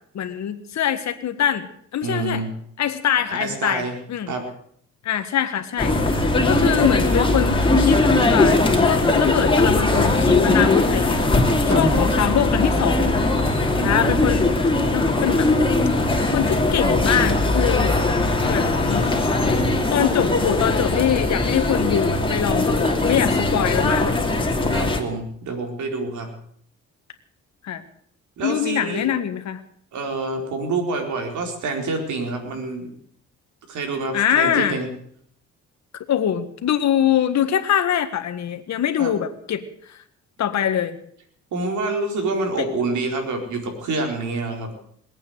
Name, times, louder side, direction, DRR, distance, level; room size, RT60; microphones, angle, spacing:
voice 1, 0.1-2.4 2.8-4.3 5.0-8.0 8.3-11.3 11.6-13.1 13.8-15.5 16.3-17.9 18.4-19.2 19.9-24.3 27.6-27.8 28.4-29.6 34.1-34.8 35.9-40.0 40.4-41.0 42.6-42.7, left 9 dB, 65° left, 8 dB, 1.7 m, -23 dB
voice 2, 2.0-2.5 3.3-4.0 4.3-4.4 11.7-12.2 13.7-14.3 24.7-26.3 28.4-29.1 29.9-32.9 33.7-34.9 39.0-39.1 41.5-44.7, right 3 dB, 75° right, 3 dB, 4.5 m, -27 dB
sound 1, 5.8-25.0, left 2 dB, 15° left, 2.8 m, -20 dB
20.5 x 8.8 x 8.0 m, 0.65 s
cardioid pair, 90°, 30 cm